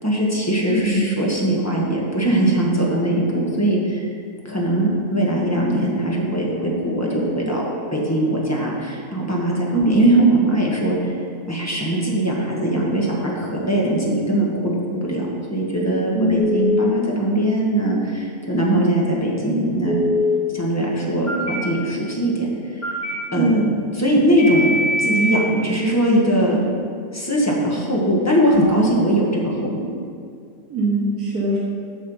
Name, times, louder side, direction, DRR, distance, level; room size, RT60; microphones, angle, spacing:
voice 1, 0.0-4.1 4.4-11.1 11.5-19.9 20.5-22.5 23.3-23.6 24.0-24.7 25.0-26.6 27.1-29.8, right 1 dB, 10° left, -3 dB, 1.3 m, -20 dB
voice 2, 16.1-16.5 23.3-23.7 28.5-28.9 30.7-31.6, right 1 dB, 90° right, -4 dB, 1.6 m, -21 dB
Telephone, 16.4-16.9 19.9-20.4 21.3-21.6 22.8-23.1 24.4-25.4, left 2 dB, 30° left, 1.2 m, -22 dB
7.4 x 6.7 x 5.5 m, 2.3 s
omnidirectional pair, 1.6 m